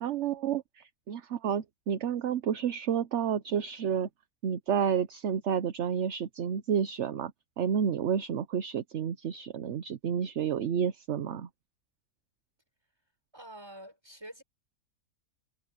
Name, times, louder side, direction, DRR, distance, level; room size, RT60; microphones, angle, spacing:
voice 1, 0.0-4.1 4.4-7.3 7.6-11.5, right 8 dB, 60° right, 1.0 m, -30 dB
voice 2, 13.3-14.4, right 1 dB, 15° right, 5.8 m, -46 dB
omnidirectional pair, 1.5 m